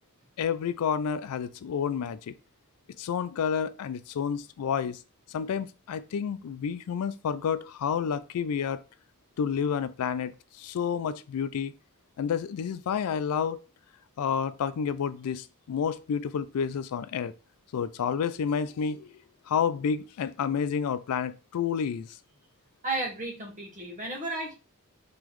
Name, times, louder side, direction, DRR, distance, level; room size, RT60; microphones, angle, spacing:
voice 1, 0.4-2.3 3.0-5.0 5.3-8.8 9.4-10.3 10.6-11.7 12.2-13.6 14.2-17.3 17.7-19.1 19.5-22.1, left 7 dB, 85° left, 0.4 m, -30 dB
voice 2, 22.8-24.5, right 2 dB, 35° right, 1.1 m, -33 dB
3.8 x 3.0 x 3.0 m
head